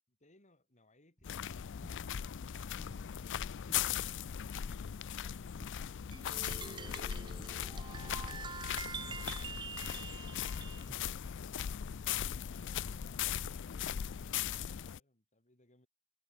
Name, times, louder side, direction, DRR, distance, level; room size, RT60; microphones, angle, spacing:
voice 1, 0.1-2.2 9.1-11.1 11.6-13.3 13.6-15.9, left 2 dB, 30° left, 6.2 m, -67 dB
sound 1, 1.2-15.0, left 9 dB, 55° left, 0.5 m, -39 dB
sound 2, 1.2-11.0, equal, 10° left, 1.6 m, -58 dB
Cellphone Alarm Clock, 6.1-10.9, right 5 dB, 20° right, 0.5 m, -45 dB
open air
head